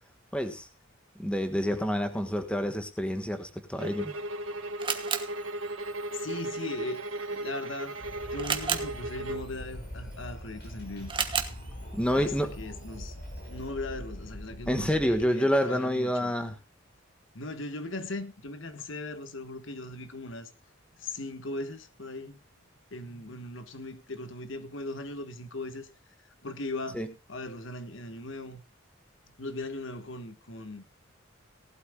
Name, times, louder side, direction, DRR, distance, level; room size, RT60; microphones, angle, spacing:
voice 1, 0.3-0.7 1.2-4.1 11.9-12.5 14.7-16.5 26.9-27.1, equal, 5° left, 1.4 m, -28 dB
sound 1, 3.8-9.5, right 1 dB, 80° right, 1.4 m, -36 dB
Camera, 3.9-13.7, right 6 dB, 25° right, 1.2 m, -38 dB
voice 2, 6.1-7.0 7.3-8.0 8.3-11.1 12.1-13.2 13.5-16.3 17.3-20.5 21.0-22.4 22.9-25.9 26.4-27.0 27.3-28.6 29.4-30.8, left 2 dB, 70° left, 1.5 m, -38 dB
Wind, 8.0-15.3, equal, 50° left, 5.7 m, -42 dB
18.5 x 12.5 x 2.3 m
head